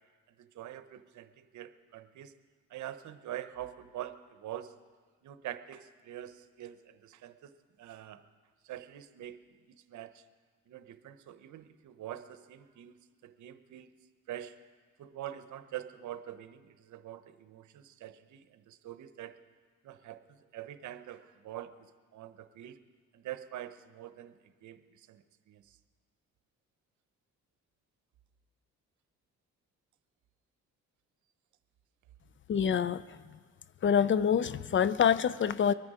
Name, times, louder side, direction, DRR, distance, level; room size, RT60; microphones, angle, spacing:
voice 1, 0.4-2.3 2.7-4.7 5.2-7.5 7.8-8.2 8.6-9.4 9.9-10.2 10.7-13.0 13.2-13.9 14.3-14.6 15.0-19.4 19.8-22.8 23.1-24.3 24.6-25.8, right 12 dB, 75° right, 11 dB, 0.9 m, -45 dB
voice 2, 32.5-33.0 33.8-35.7, left 8 dB, 40° left, 17 dB, 0.5 m, -26 dB
23.0 x 9.5 x 4.9 m, 1.5 s
cardioid pair, 90°, 30 cm